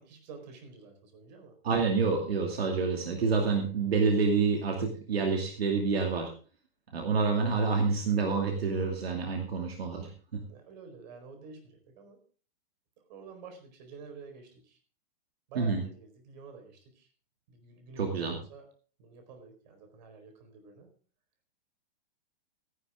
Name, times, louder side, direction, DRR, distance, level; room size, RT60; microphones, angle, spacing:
voice 1, 0.0-1.5 7.3-7.5 10.5-12.2 13.1-14.8 15.5-17.1 17.5-18.6 19.0-20.9, right 4 dB, 45° right, 6 dB, 4.6 m, -49 dB
voice 2, 1.6-6.3 6.9-10.4 15.6-15.8 18.0-18.4, right 4 dB, 90° right, 2 dB, 2.5 m, -28 dB
14.5 x 11.0 x 3.7 m, 0.39 s
hypercardioid pair, 145°, 29 cm